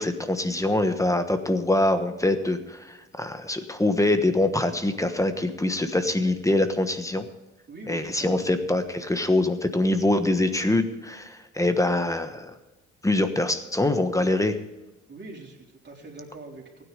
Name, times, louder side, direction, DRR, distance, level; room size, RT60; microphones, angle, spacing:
voice 1, 0.0-7.2 7.9-12.5 13.0-14.6, left 2 dB, 10° left, 8 dB, 1.2 m, -24 dB
voice 2, 6.0-6.3 7.7-8.5 15.1-16.8, right 3 dB, 35° right, -1 dB, 3.8 m, -43 dB
15.5 x 9.8 x 5.3 m, 1.1 s
cardioid pair, 90°, 30 cm